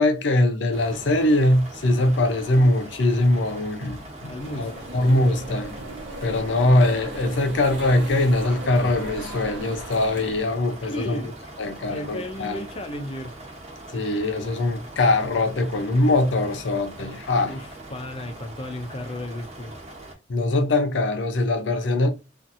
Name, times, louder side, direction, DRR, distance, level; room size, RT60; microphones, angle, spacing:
voice 1, 0.0-5.7 6.2-11.2 11.6-12.6 13.9-17.6 20.3-22.1, left 1 dB, 85° left, 0.6 m, -22 dB
sound 1, 0.7-20.1, right 1 dB, 35° right, 0.8 m, -42 dB
voice 2, 4.2-4.9 10.8-11.3 11.9-13.3 17.4-19.7, left 1 dB, 30° left, 0.5 m, -34 dB
sound 2, 4.4-10.4, right 1 dB, 80° right, 1.0 m, -37 dB
2.7 x 2.5 x 2.5 m
head